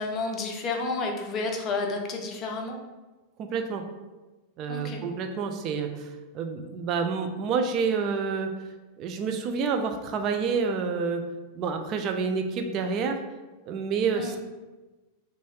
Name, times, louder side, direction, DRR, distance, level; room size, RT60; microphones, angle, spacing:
voice 1, 0.0-2.8 4.7-5.0 14.2-14.4, left 3 dB, 30° left, 2 dB, 0.4 m, -31 dB
voice 2, 3.4-3.8 4.6-8.5 9.0-11.2 11.5-13.2 13.7-14.4, right 5 dB, 35° right, 5 dB, 0.3 m, -28 dB
2.6 x 2.3 x 3.0 m, 1.2 s
figure-of-eight pair, 90°, 0 cm